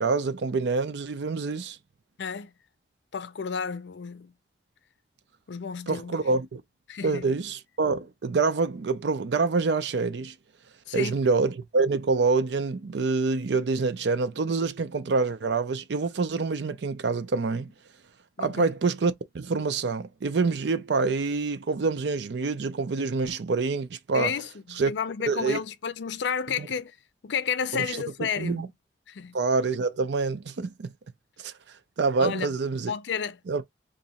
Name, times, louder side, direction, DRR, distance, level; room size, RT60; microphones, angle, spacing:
voice 1, 0.0-1.8 5.9-6.6 7.0-10.3 10.9-17.7 18.4-24.3 24.8-24.9 25.3-25.6 26.6-26.7 27.7-28.0 28.4-28.7 29.3-30.9 31.4-31.5 32.0-32.9 33.5-33.6, right 4 dB, 80° right, 0.5 m, -26 dB
voice 2, 2.2-2.5 3.1-4.3 5.5-6.2 6.9-7.3 10.9-11.2 18.4-18.7 24.1-27.0 27.2-28.7 29.1-29.3 32.2-32.5 32.9-33.4, left 6 dB, 90° left, 0.5 m, -31 dB
2.9 x 2.6 x 4.0 m
head